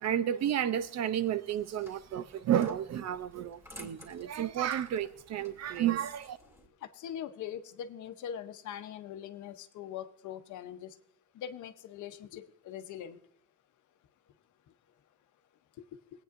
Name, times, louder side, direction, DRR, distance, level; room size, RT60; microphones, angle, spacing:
voice 1, 0.0-6.4, right 10 dB, 60° right, 0.6 m, -31 dB
sound 1, 1.5-6.7, equal, 10° right, 2.4 m, -54 dB
voice 2, 6.8-10.9 11.3-13.2, left 9 dB, 80° left, 0.8 m, -42 dB
19.5 x 9.1 x 2.5 m
cardioid pair, 90°, 30 cm